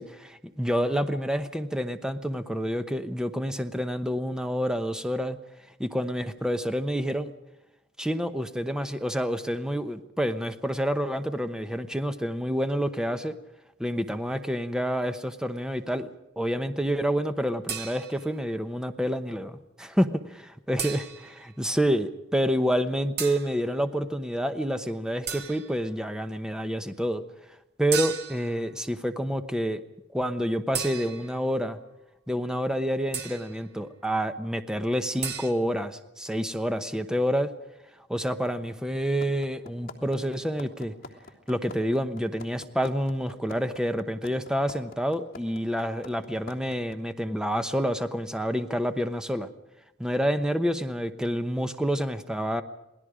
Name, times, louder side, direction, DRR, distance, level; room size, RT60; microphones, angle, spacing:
voice 1, 0.0-5.4 5.8-7.3 8.0-13.3 13.8-16.1 16.4-21.0 21.4-27.2 27.8-29.8 30.1-31.8 32.3-37.5 38.1-40.9 41.5-49.5 50.0-52.6, equal, 5° right, 9 dB, 0.9 m, -28 dB
sound 1, 17.7-18.4 20.8-21.4 23.2-23.6 25.3-25.8 27.9-28.6 30.7-31.5 33.1-33.6 35.2-35.5, right 7 dB, 55° right, 1.9 m, -34 dB
sound 2, 39.2-47.0, left 3 dB, 50° left, 3.2 m, -43 dB
27.5 x 19.0 x 5.0 m, 0.92 s
head